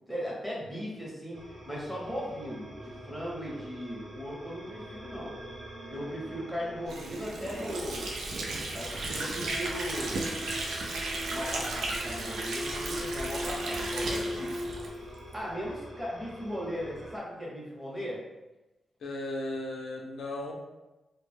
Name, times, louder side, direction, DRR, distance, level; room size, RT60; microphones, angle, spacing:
voice 1, 0.1-5.4 5.9-8.1 8.7-10.2 11.3-14.6 15.3-18.2, equal, 5° right, -5 dB, 0.7 m, -37 dB
sound 1, 1.3-17.2, right 1 dB, 70° right, 0.8 m, -46 dB
Water / Sink (filling or washing), 6.9-15.4, right 2 dB, 85° right, 0.4 m, -35 dB
sound 2, 9.4-14.9, left 1 dB, 45° right, 0.6 m, -39 dB
voice 2, 19.0-20.5, left 1 dB, 75° left, 0 dB, 0.4 m, -36 dB
2.2 x 2.0 x 3.2 m, 1.0 s
wide cardioid pair, 165°, 0 cm